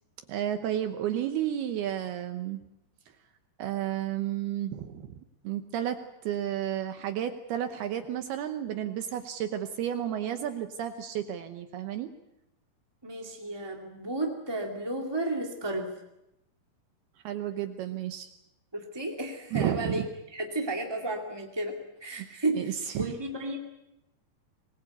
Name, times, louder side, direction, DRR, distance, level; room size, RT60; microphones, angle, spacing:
voice 1, 0.3-2.6 3.6-5.2 5.4-12.1 17.2-18.3 19.5-20.1 22.6-23.1, right 10 dB, 75° right, 7 dB, 2.7 m, -32 dB
voice 2, 13.0-15.9 18.7-20.0 20.3-23.6, right 2 dB, 15° right, 1 dB, 1.0 m, -33 dB
25.0 x 20.5 x 8.1 m, 0.87 s
omnidirectional pair, 5.0 m